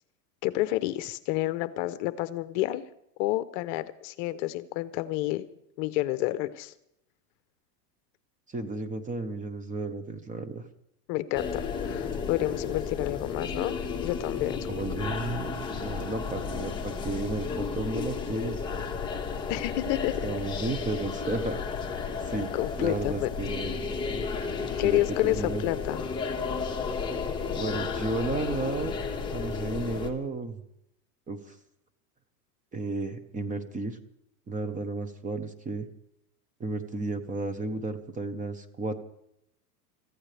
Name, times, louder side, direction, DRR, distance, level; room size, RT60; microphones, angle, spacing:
voice 1, 0.4-2.8 3.2-5.4 5.8-6.7 11.1-13.7 14.0-14.7 19.5-20.3 22.5-23.3 24.8-26.0, left 16 dB, 45° left, 13 dB, 0.9 m, -29 dB
voice 2, 8.5-10.6 14.7-18.8 20.2-21.6 22.2-22.5 22.8-24.2 24.8-25.7 27.5-29.0 29.3-30.6 31.3-31.5 32.7-34.0 34.5-35.9 36.6-39.0, right 3 dB, 15° right, 9 dB, 1.0 m, -33 dB
sound 1, 11.3-30.1, left 5 dB, 10° left, 1.7 m, -33 dB
25.5 x 15.0 x 3.4 m, 0.78 s
supercardioid pair, 140°, 48 cm